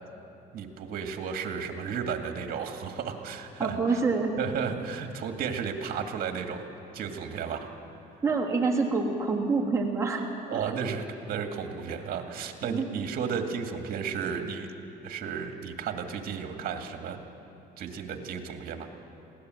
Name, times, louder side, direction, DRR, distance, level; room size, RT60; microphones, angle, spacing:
voice 1, 0.5-4.0 4.4-6.7 6.9-7.7 10.5-14.7 15.0-17.2 17.8-18.9, right 6 dB, 60° right, 5 dB, 2.1 m, -33 dB
voice 2, 3.6-4.3 8.2-10.2 10.5-10.7 12.6-12.8, right 4 dB, 15° right, -2 dB, 3.2 m, -26 dB
21.5 x 16.5 x 7.8 m, 2.8 s
cardioid pair, 110°, 17 cm